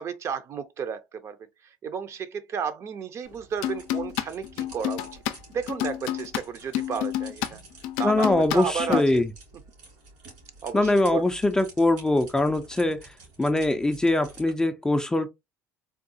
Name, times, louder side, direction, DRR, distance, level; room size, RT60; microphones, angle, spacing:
voice 1, 0.0-1.4 1.6-5.1 5.5-7.6 8.0-9.2 10.6-11.2, right 6 dB, 45° right, 0.5 m, -33 dB
sound 1, 3.2-14.5, right 2 dB, 85° right, 2.3 m, -49 dB
sound 2, 3.6-6.4 6.7-7.5 7.8-9.0, left 12 dB, 80° left, 0.4 m, -29 dB
voice 2, 8.0-9.3 10.7-15.3, left 2 dB, 10° left, 0.4 m, -23 dB
3.5 x 2.3 x 2.6 m
supercardioid pair, 105°, 7 cm